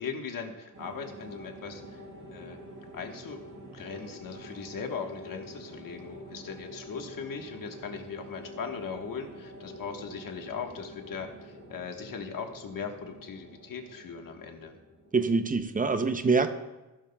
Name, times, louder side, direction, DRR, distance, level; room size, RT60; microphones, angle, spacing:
voice 1, 0.0-2.0 2.3-2.6 2.9-3.4 3.7-14.8, left 6 dB, 85° left, 4 dB, 1.2 m, -39 dB
sound 1, 0.7-15.3, equal, 80° right, 4.1 m, -47 dB
voice 2, 15.1-16.5, right 4 dB, 25° right, 8 dB, 0.5 m, -25 dB
15.0 x 12.5 x 2.2 m, 1.1 s
wide cardioid pair, 170°, 33 cm